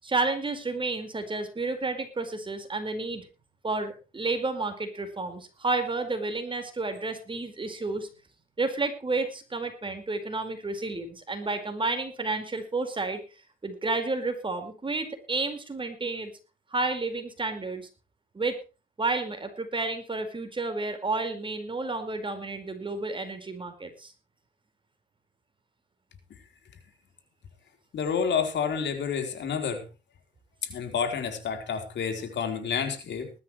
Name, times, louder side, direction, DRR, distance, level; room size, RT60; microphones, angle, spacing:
voice 1, 0.0-3.3 3.6-8.1 8.6-13.2 13.6-16.3 16.7-17.9 18.3-18.6 19.0-24.1, right 3 dB, 25° right, 7 dB, 4.7 m, -31 dB
voice 2, 27.9-29.9 30.6-33.3, left 6 dB, 65° left, 6 dB, 4.1 m, -29 dB
20.0 x 13.0 x 3.2 m, 0.32 s
cardioid pair, 90°, 20 cm